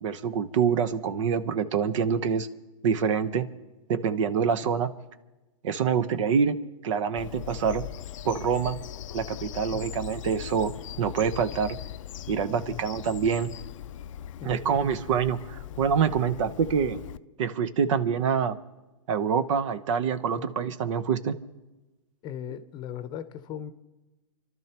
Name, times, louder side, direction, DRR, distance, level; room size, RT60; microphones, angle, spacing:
voice 1, 0.0-2.5 2.8-3.5 3.9-4.9 5.6-6.6 6.8-7.9 8.2-8.8 9.1-10.7 11.0-11.8 12.3-13.5 14.4-17.0 17.4-18.6 19.1-21.3, right 7 dB, 60° right, 12 dB, 1.0 m, -26 dB
Bird vocalization bird call bird song, 7.2-17.2, left 12 dB, 60° left, 0.5 m, -40 dB
voice 2, 12.5-12.8 14.4-14.7 20.3-20.5 22.2-23.7, left 9 dB, 25° left, 11 dB, 0.8 m, -38 dB
29.5 x 12.5 x 3.0 m, 1.1 s
hypercardioid pair, 140°, 18 cm